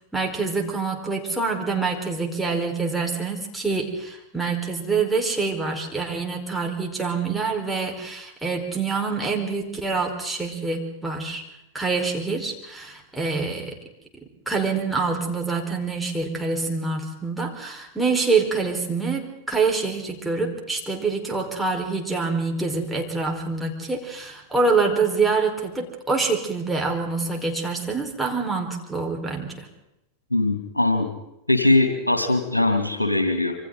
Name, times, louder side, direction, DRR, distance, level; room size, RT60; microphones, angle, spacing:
voice 1, 0.1-11.4 11.7-13.8 14.5-29.7, right 4 dB, 5° right, 0 dB, 4.4 m, -26 dB
voice 2, 30.3-31.1 31.5-33.5, left 2 dB, 80° left, 6 dB, 2.5 m, -21 dB
27.5 x 25.0 x 3.9 m, 0.86 s
figure-of-eight pair, 90°, 0 cm